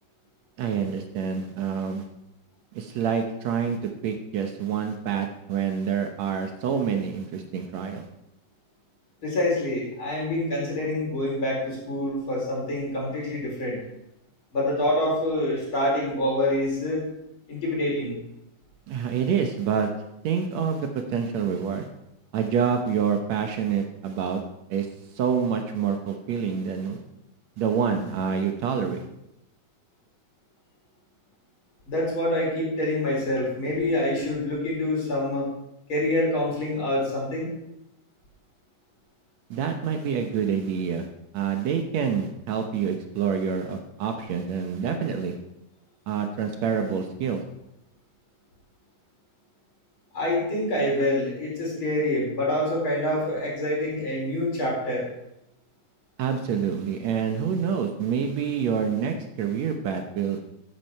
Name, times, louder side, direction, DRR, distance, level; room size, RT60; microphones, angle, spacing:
voice 1, 0.6-2.1 2.7-8.1 18.9-19.9 20.2-21.9 22.3-24.4 24.7-24.9 25.1-27.0 27.6-29.0 39.5-41.1 41.3-45.4 46.1-47.4 56.2-60.4, right 7 dB, 65° right, 5 dB, 2.0 m, -27 dB
voice 2, 9.2-13.8 14.5-17.0 17.5-18.1 31.9-35.5 35.9-37.5 50.1-55.0, left 1 dB, 40° left, -3 dB, 4.9 m, -26 dB
13.5 x 9.6 x 4.6 m, 0.84 s
omnidirectional pair, 3.7 m